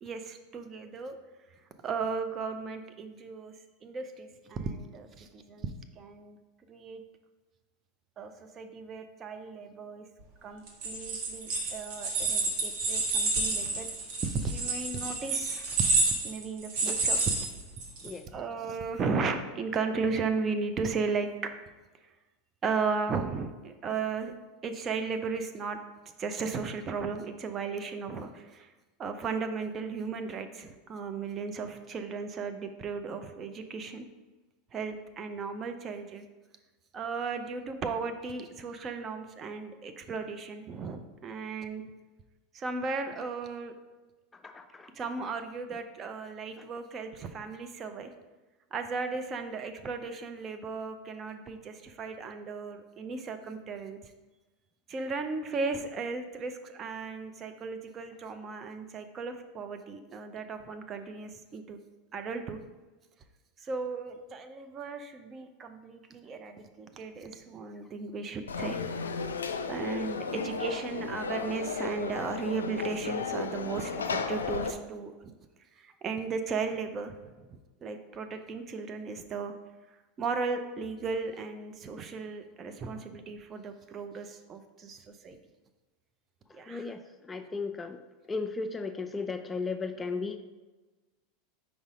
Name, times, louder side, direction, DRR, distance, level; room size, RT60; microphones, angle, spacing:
voice 1, 0.0-1.2 1.8-3.5 3.8-6.4 6.7-7.0 8.2-10.1 10.4-13.9 14.2-15.8 16.2-17.5 18.0-21.5 22.0-22.1 22.6-24.3 24.6-25.8 26.2-28.7 29.0-34.1 34.7-36.3 36.9-41.8 42.5-43.7 44.9-48.1 48.7-54.0 54.9-61.8 62.1-62.6 63.6-68.9 69.7-75.3 75.8-79.5 80.2-85.4 86.5-86.9, right 4 dB, 35° right, 7 dB, 0.6 m, -35 dB
sound 1, 10.7-18.1, right 3 dB, 60° right, 1.5 m, -29 dB
voice 2, 44.3-44.9 86.6-87.0 87.3-88.0 88.3-90.4, left 4 dB, 20° left, 8 dB, 0.4 m, -35 dB
Conversation / Crowd, 68.5-74.7, left 5 dB, 85° left, 0.4 m, -34 dB
4.7 x 4.1 x 4.9 m, 1.2 s
hypercardioid pair, 90°, 0 cm